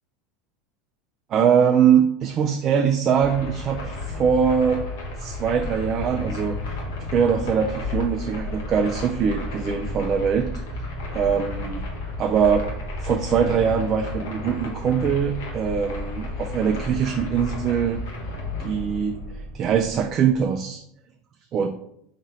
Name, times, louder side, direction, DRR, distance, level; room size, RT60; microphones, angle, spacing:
voice 1, 1.3-4.8 5.2-6.6 7.1-10.5 11.1-11.8 12.2-12.7 13.0-18.0 18.6-19.2 19.5-20.8 21.5-21.7, right 7 dB, 35° right, 3 dB, 0.4 m, -22 dB
sound 1, 3.1-20.5, left 2 dB, 85° left, 1.2 m, -32 dB
4.1 x 3.0 x 4.1 m, 0.74 s
supercardioid pair, 140°, 0 cm